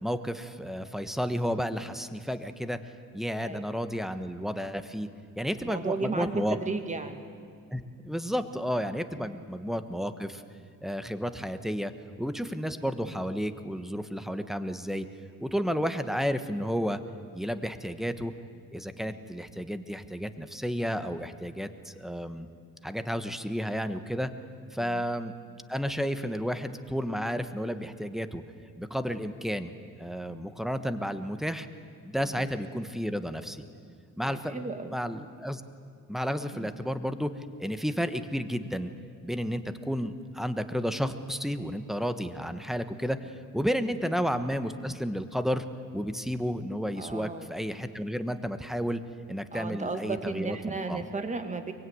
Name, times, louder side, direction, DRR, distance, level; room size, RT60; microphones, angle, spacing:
voice 1, 0.0-2.8 3.1-5.1 5.4-6.6 7.7-10.4 10.8-11.9 12.2-15.1 15.4-17.0 17.3-18.3 18.7-22.5 22.8-24.3 24.7-25.3 25.7-28.4 28.8-29.7 30.0-31.7 32.0-33.6 34.2-34.7 34.9-35.6 36.1-37.3 37.6-38.9 39.2-45.6 45.9-49.0 49.3-51.0, equal, ahead, 10 dB, 1.2 m, -32 dB
voice 2, 3.4-3.7 5.6-7.2 9.2-9.4 15.9-16.1 19.0-19.2 32.2-32.5 34.3-35.0 36.5-36.7 43.8-44.0 47.0-47.5 49.5-51.7, right 3 dB, 20° right, 7 dB, 2.0 m, -35 dB
23.5 x 23.0 x 9.5 m, 2.4 s
cardioid pair, 140°, 33 cm